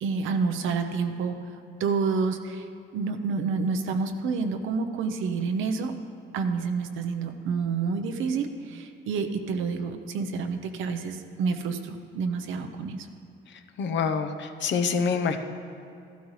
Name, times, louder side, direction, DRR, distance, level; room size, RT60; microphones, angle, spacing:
voice 1, 0.0-1.4 1.8-2.7 2.9-5.9 6.3-13.1, right 5 dB, 85° right, 6 dB, 0.9 m, -28 dB
voice 2, 13.8-15.4, left 5 dB, 65° left, 6 dB, 0.9 m, -26 dB
14.0 x 12.5 x 3.3 m, 2.6 s
cardioid pair, 90°, 20 cm